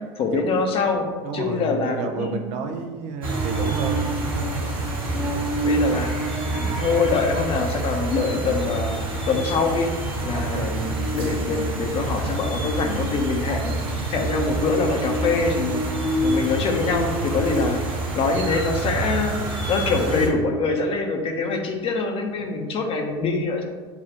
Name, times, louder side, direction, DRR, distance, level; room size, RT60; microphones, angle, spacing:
voice 1, 0.2-1.0 1.3-2.4 2.7-2.9 5.1-5.3 5.6-6.1 6.5-9.0 9.3-9.9 10.2-13.8 14.1-15.8 16.2-17.8 18.1-23.6, left 4 dB, 40° left, 4 dB, 0.8 m, -24 dB
voice 2, 1.2-4.6 5.9-6.0 10.3-10.9, right 5 dB, 55° right, 5 dB, 0.6 m, -31 dB
sound 1, 3.2-20.3, right 2 dB, 35° right, 1.4 m, -26 dB
6.9 x 2.4 x 2.8 m, 1.3 s
hypercardioid pair, 95°, 15 cm